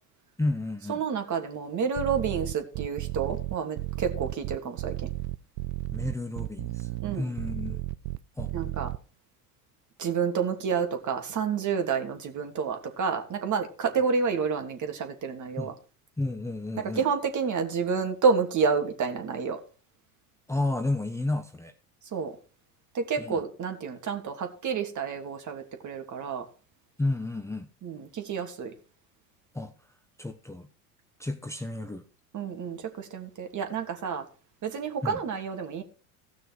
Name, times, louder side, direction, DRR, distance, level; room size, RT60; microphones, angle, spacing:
voice 1, 0.4-1.0 5.9-7.8 8.4-8.5 15.6-15.7 16.2-17.0 20.5-21.7 23.2-23.4 27.0-27.7 29.5-29.7 30.2-30.7 31.2-32.0 35.0-35.2, left 2 dB, 5° left, 1.0 m, -31 dB
voice 2, 0.9-4.9 7.0-7.3 8.5-8.9 10.0-15.7 16.8-19.6 22.1-22.3 22.9-26.5 27.8-28.7 32.3-34.3 34.6-35.8, right 6 dB, 40° right, 2.9 m, -29 dB
sound 1, 2.0-9.0, right 18 dB, 55° right, 0.7 m, -33 dB
16.0 x 6.2 x 4.8 m
hypercardioid pair, 90°, 46 cm